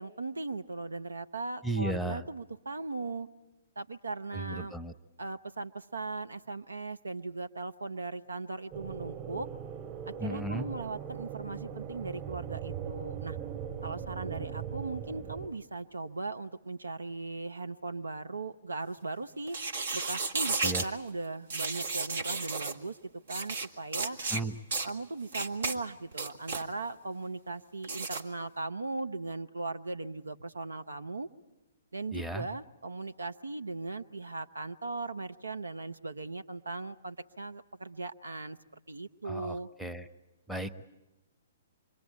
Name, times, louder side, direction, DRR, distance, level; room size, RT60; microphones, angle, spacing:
voice 1, 0.0-3.3 3.8-4.8 5.2-9.5 10.1-13.4 13.8-19.6 19.9-23.0 23.3-24.2 24.8-31.3 31.9-38.6 38.9-39.7, right 3 dB, 80° right, 10 dB, 0.9 m, -38 dB
voice 2, 1.6-2.3 4.3-4.9 10.2-10.7 20.6-20.8 24.3-24.6 32.1-32.5 39.2-40.1 40.5-40.8, right 2 dB, ahead, 9 dB, 0.9 m, -35 dB
sound 1, 8.7-15.5, right 8 dB, 25° right, 6.4 m, -40 dB
sound 2, 19.5-20.9 21.5-22.7 23.3-23.7 23.9-24.4 24.7-24.9 25.3-25.8 26.1-26.6 27.8-28.2, right 3 dB, 60° right, 1.7 m, -33 dB
26.0 x 23.0 x 8.5 m, 1.0 s
figure-of-eight pair, 120°, 0 cm